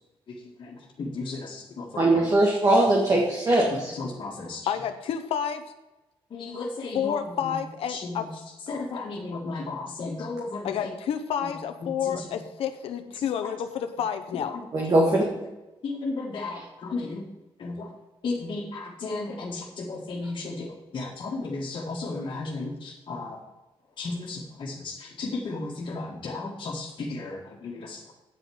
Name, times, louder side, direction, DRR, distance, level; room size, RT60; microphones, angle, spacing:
voice 1, 0.3-2.3 3.7-4.7 6.3-7.6 7.9-8.4 8.7-10.9 11.4-11.6 11.8-12.3 13.1-13.5 14.3-14.9 15.8-17.3 17.6-17.9 18.2-23.4 24.0-28.2, left 3 dB, 50° left, -4 dB, 1.7 m, -35 dB
voice 2, 2.0-3.9 14.7-15.3, right 1 dB, 35° right, -1 dB, 1.8 m, -21 dB
voice 3, 4.7-5.6 6.9-8.3 10.6-14.5, left 8 dB, 90° left, 7 dB, 0.7 m, -29 dB
9.2 x 5.3 x 7.7 m, 1.1 s
cardioid pair, 125°, 10 cm